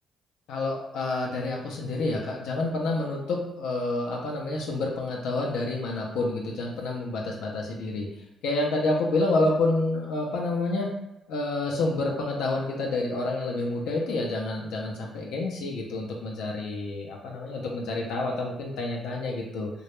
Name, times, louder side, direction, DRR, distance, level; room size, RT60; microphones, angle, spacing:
voice 1, 0.5-8.1 8.4-10.9 11.3-19.7, left 2 dB, 90° left, -1 dB, 0.4 m, -28 dB
2.2 x 2.0 x 2.9 m, 0.92 s
cardioid pair, 90°, 0 cm